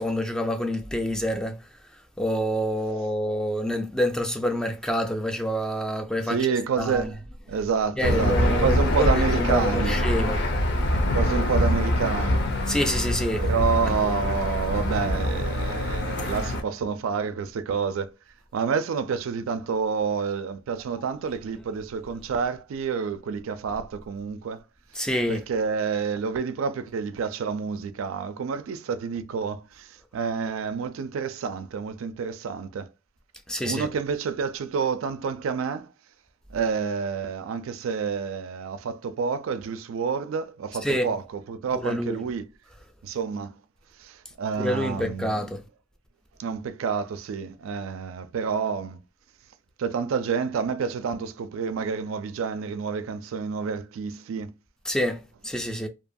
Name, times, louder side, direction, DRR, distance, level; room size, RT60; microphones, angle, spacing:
voice 1, 0.0-1.6 2.2-6.4 6.8-7.1 8.0-10.4 12.7-13.4 25.0-25.4 33.5-33.9 40.8-41.1 41.8-42.2 44.6-45.6 54.9-55.9, equal, 5° left, 0.3 m, -27 dB
voice 2, 6.2-7.2 7.5-10.0 11.1-12.5 13.4-18.1 18.5-24.6 25.3-32.9 33.6-35.9 36.5-42.5 43.0-43.6 44.0-45.5 46.4-49.0 49.8-54.5, right 5 dB, 85° right, 0.4 m, -28 dB
Aircraft / Engine, 8.0-16.6, left 1 dB, 55° left, 0.6 m, -24 dB
2.7 x 2.2 x 2.5 m
head